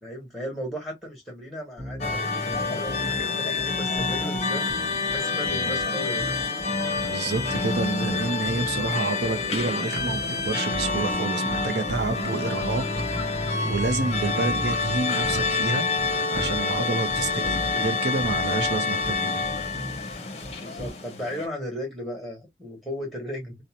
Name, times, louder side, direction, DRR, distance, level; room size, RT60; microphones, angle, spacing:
voice 1, 0.0-6.3 17.3-17.6 20.6-23.6, equal, ahead, 1.0 m, -36 dB
sound 1, 1.8-2.2 2.5-3.2 3.6-4.4 4.7-5.9 6.2-6.7 6.9-8.9 9.2-9.6 10.0-11.2 11.5-12.3 12.6-15.7 16.0-16.8 17.1-17.9 18.2-20.9, equal, 50° right, 0.9 m, -37 dB
sound 2, 2.0-21.4, left 4 dB, 35° left, 0.6 m, -27 dB
voice 2, 7.0-19.4, right 3 dB, 70° right, 0.5 m, -29 dB
2.6 x 2.0 x 2.8 m
head